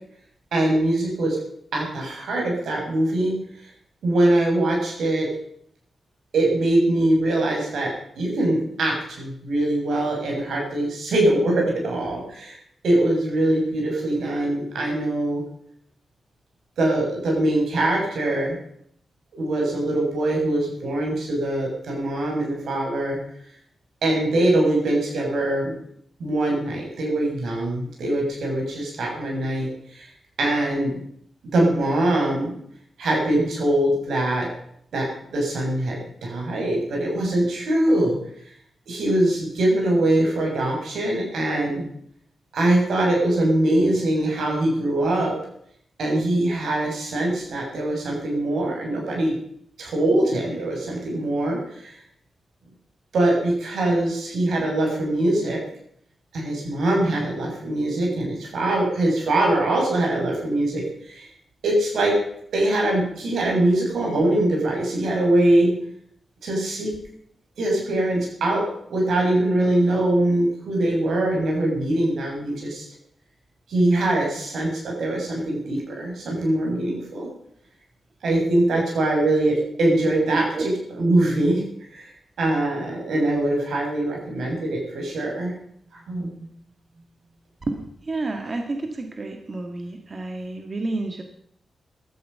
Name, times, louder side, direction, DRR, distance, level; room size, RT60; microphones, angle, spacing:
voice 1, 0.5-1.4 1.7-3.4 4.0-5.3 6.3-12.5 12.8-15.4 16.8-18.6 19.3-23.2 24.0-25.7 26.2-30.1 30.4-31.0 31.5-32.5 33.0-34.5 34.9-38.1 38.9-41.8 42.5-45.3 46.0-49.4 49.8-51.9 53.1-55.6 56.3-61.3 61.6-62.1 62.5-65.7 66.4-66.9 67.6-72.9 73.7-77.3 78.2-80.4 81.0-81.6 81.9-82.0 82.4-85.5 86.1-86.3, right 1 dB, 85° right, -1 dB, 7.1 m, -22 dB
voice 2, 80.3-80.7 87.7-91.2, right 2 dB, 35° right, 4 dB, 1.8 m, -29 dB
16.0 x 13.0 x 5.7 m, 0.69 s
wide cardioid pair, 110°, 0 cm